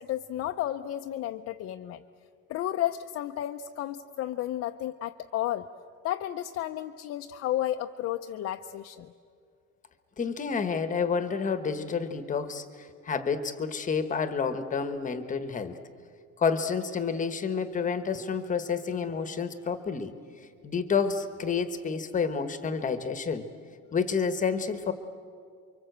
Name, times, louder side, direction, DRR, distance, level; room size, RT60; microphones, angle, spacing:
voice 1, 0.0-2.0 2.5-5.7 6.0-9.1, left 12 dB, 45° left, 5 dB, 0.6 m, -32 dB
voice 2, 10.2-15.8 16.4-20.1 20.6-23.5 23.9-24.9, left 5 dB, 25° left, 10 dB, 1.1 m, -29 dB
29.0 x 24.0 x 8.0 m, 2.3 s
cardioid pair, 170°, 33 cm